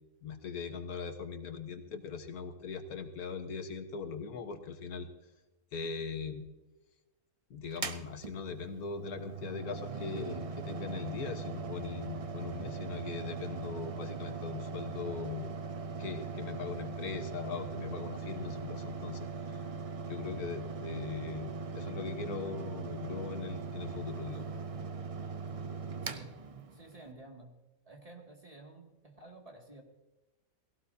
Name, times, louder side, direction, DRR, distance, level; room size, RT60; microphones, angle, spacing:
voice 1, 0.2-5.1 5.7-6.5 7.5-15.5 16.0-19.6 20.1-24.5, left 5 dB, 85° left, 7 dB, 1.7 m, -40 dB
Mechanical fan, 7.7-27.1, right 4 dB, 45° right, 0.4 m, -40 dB
voice 2, 26.0-26.3 26.7-27.5 27.9-29.8, right 2 dB, 25° right, 0 dB, 2.3 m, -52 dB
18.0 x 17.5 x 2.8 m, 1.1 s
omnidirectional pair, 1.5 m